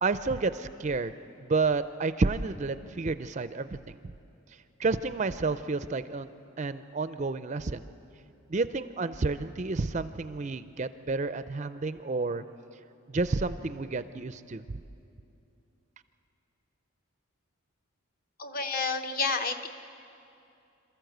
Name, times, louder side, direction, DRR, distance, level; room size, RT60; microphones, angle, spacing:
voice 1, 0.0-4.0 4.8-6.3 6.6-7.8 8.5-12.4 13.1-14.6, right 3 dB, 30° right, 12 dB, 0.4 m, -30 dB
voice 2, 18.4-19.7, left 4 dB, 40° left, 6 dB, 1.0 m, -30 dB
27.0 x 14.0 x 7.9 m, 2.7 s
head